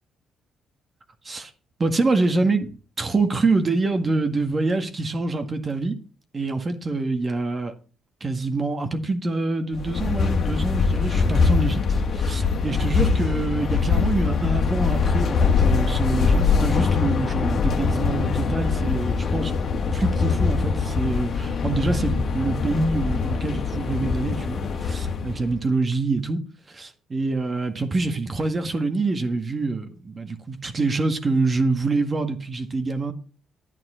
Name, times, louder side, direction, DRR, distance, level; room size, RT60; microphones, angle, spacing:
voice 1, 1.8-6.0 6.3-7.7 8.2-19.5 19.9-26.4 26.7-33.1, right 3 dB, 35° right, 1.8 m, -25 dB
sound 1, 9.7-25.5, left 5 dB, 55° left, 1.7 m, -23 dB
11.0 x 9.1 x 4.4 m
cardioid pair, 90°, 0 cm